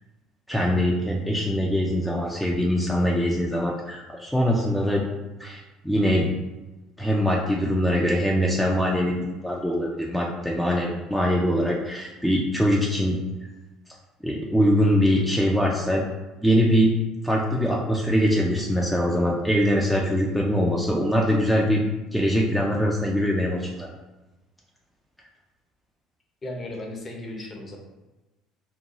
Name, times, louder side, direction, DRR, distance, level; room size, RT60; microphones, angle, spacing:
voice 1, 0.5-5.0 5.4-6.3 7.0-13.2 14.2-16.0 16.4-16.9 17.2-21.8 22.1-23.9, equal, ahead, -3 dB, 0.4 m, -23 dB
voice 2, 26.4-27.8, left 1 dB, 30° left, 0 dB, 0.7 m, -35 dB
2.8 x 2.2 x 2.8 m, 1.1 s
figure-of-eight pair, 60°, 0 cm